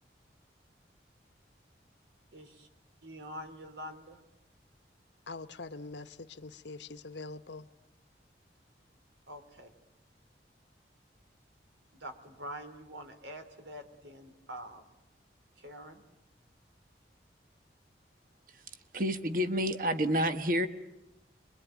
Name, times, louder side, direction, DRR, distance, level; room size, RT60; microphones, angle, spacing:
voice 1, 2.3-2.7 3.0-4.2 9.3-9.7 11.9-14.8 15.6-16.0, equal, 85° right, 3.8 m, -45 dB
voice 2, 5.3-7.7, left 3 dB, 80° left, 1.2 m, -44 dB
voice 3, 18.9-20.7, equal, 50° right, 1.3 m, -29 dB
27.0 x 22.5 x 9.3 m
head